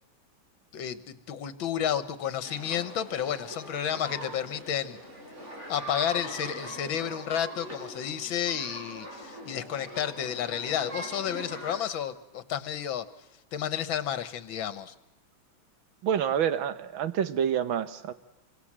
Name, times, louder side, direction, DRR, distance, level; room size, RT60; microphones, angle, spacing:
voice 1, 0.7-5.0 5.7-13.1 13.5-14.9, left 9 dB, 70° left, 13 dB, 1.9 m, -31 dB
sound 1, 2.4-11.8, right 1 dB, 35° right, 7.0 m, -42 dB
voice 2, 16.0-18.1, right 8 dB, 70° right, 12 dB, 1.9 m, -27 dB
26.5 x 24.0 x 7.5 m, 0.95 s
omnidirectional pair, 2.2 m